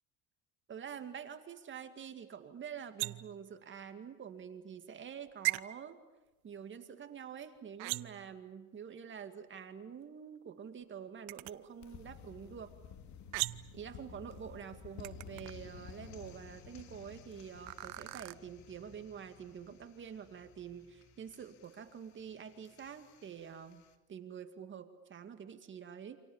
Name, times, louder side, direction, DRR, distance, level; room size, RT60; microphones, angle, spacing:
voice 1, 0.7-6.0 6.4-12.7 13.7-23.8 24.1-26.2, right 7 dB, 30° right, 8 dB, 2.3 m, -47 dB
sound 1, 3.0-3.4 5.4-5.6 7.8-8.3 11.3-11.5 13.3-13.8 15.0-15.5 17.7-18.3, right 24 dB, 75° right, 0.9 m, -36 dB
sound 2, 11.5-23.9, left 7 dB, 50° left, 2.6 m, -54 dB
29.0 x 27.0 x 7.3 m, 1.1 s
supercardioid pair, 120°, 36 cm